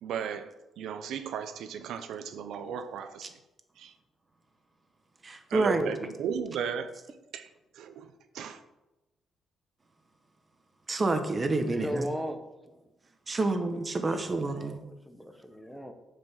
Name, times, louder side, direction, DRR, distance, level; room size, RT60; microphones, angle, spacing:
voice 1, 0.0-3.4 3.8-3.9 5.5-7.0 7.3-8.6 14.5-14.8, right 7 dB, 80° right, 9 dB, 0.6 m, -36 dB
voice 2, 5.2-5.9 10.9-12.0 13.3-14.8, right 2 dB, 30° right, 7 dB, 1.3 m, -28 dB
voice 3, 11.7-12.9 13.3-13.5 14.1-14.2 14.6-15.9, equal, ahead, 6 dB, 1.1 m, -38 dB
7.5 x 5.3 x 7.3 m, 1.0 s
cardioid pair, 90°, 0 cm